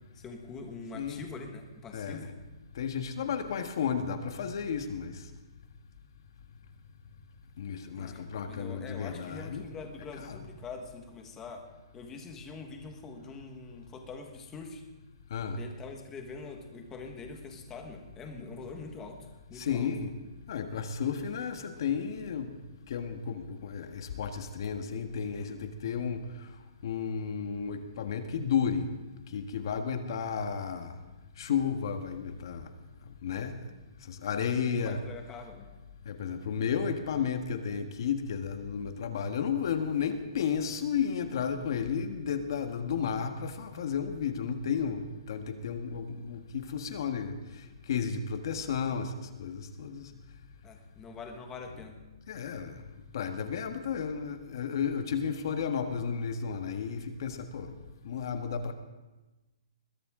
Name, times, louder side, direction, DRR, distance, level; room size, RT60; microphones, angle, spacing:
voice 1, 0.1-2.3 7.9-11.7 11.9-14.8 15.5-19.9 34.5-35.7 50.6-52.0, left 4 dB, 15° left, 4 dB, 1.5 m, -44 dB
voice 2, 2.7-5.2 7.6-9.6 15.3-15.6 19.6-20.1 20.5-22.5 22.9-26.2 26.8-28.9 29.3-31.0 31.4-32.7 33.2-33.7 34.1-35.0 36.0-50.1 52.3-52.8 53.1-57.7 58.0-58.7, left 7 dB, 55° left, 7 dB, 1.5 m, -33 dB
21.0 x 12.5 x 3.8 m, 1.1 s
hypercardioid pair, 160°, 3 cm